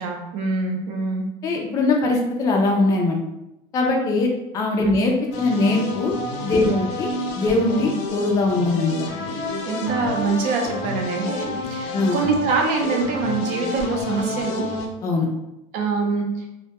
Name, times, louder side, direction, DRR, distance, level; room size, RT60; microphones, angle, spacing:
voice 1, 0.0-1.3 4.8-5.0 6.6-6.8 9.6-14.7 15.7-16.5, right 4 dB, 55° right, 1 dB, 0.5 m, -24 dB
voice 2, 1.4-3.2 3.7-4.3 4.5-6.1 6.4-7.1 7.3-8.9 11.9-12.2 15.0-15.3, left 3 dB, 20° left, 0 dB, 0.3 m, -21 dB
sound 1, 5.3-14.9, left 2 dB, 80° left, 0.5 m, -29 dB
2.1 x 2.1 x 2.8 m, 0.91 s
supercardioid pair, 150°, 15 cm